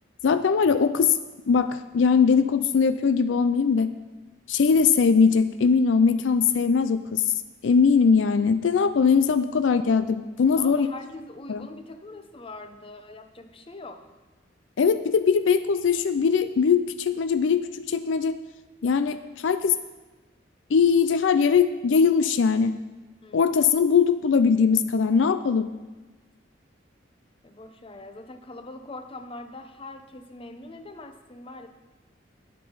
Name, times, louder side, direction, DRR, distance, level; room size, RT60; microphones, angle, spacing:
voice 1, 0.2-1.2 1.5-3.9 4.5-7.2 7.6-10.9 11.5-11.6 14.8-18.3 18.8-19.8 20.7-22.8 23.3-25.7, left 5 dB, 75° left, 11 dB, 0.4 m, -21 dB
voice 2, 10.6-14.0 23.2-23.5 27.4-31.7, left 2 dB, 30° left, 8 dB, 0.7 m, -42 dB
8.9 x 8.3 x 5.5 m, 1.2 s
head